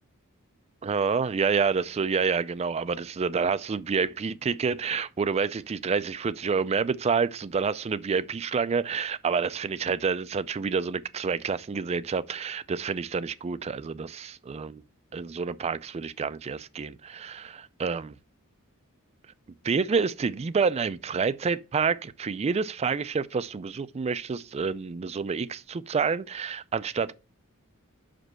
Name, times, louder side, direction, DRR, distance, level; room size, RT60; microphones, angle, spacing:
voice 1, 0.8-14.8 15.1-17.5 17.8-18.2 19.6-27.1, right 5 dB, 30° right, 0.3 m, -28 dB
5.4 x 5.1 x 6.1 m
head